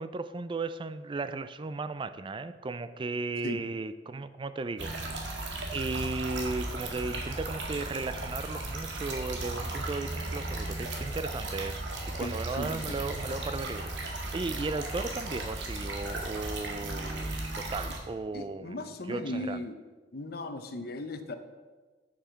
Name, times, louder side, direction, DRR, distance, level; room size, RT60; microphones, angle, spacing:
voice 1, 0.0-5.4 5.7-11.8 12.2-17.4 17.7-18.7 19.1-19.6, right 3 dB, 30° right, 13 dB, 0.4 m, -35 dB
sound 1, 4.8-18.0, right 2 dB, 85° right, 1.8 m, -36 dB
voice 2, 12.2-13.0 18.3-19.8 20.1-21.4, left 1 dB, 60° left, 8 dB, 0.8 m, -37 dB
7.3 x 7.1 x 6.3 m, 1.3 s
head